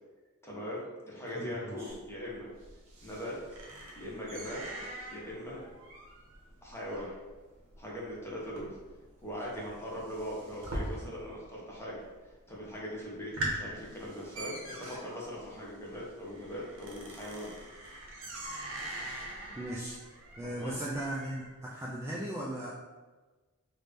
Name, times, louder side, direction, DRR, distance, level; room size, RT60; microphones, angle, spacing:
voice 1, 0.4-2.5 3.0-3.4 3.9-4.7 5.1-5.6 6.6-7.1 7.8-8.7 9.2-12.0 12.5-17.5 20.6-20.7, equal, 10° left, -5 dB, 0.8 m, -40 dB
voice 2, 1.3-1.9 19.6-20.0 20.4-22.7, right 1 dB, 10° right, -6 dB, 0.3 m, -37 dB
sound 1, 1.9-11.5 11.7-12.3 12.7-12.8 13.1-21.5, right 1 dB, 60° right, 0.8 m, -43 dB
3.2 x 2.6 x 3.3 m, 1.3 s
head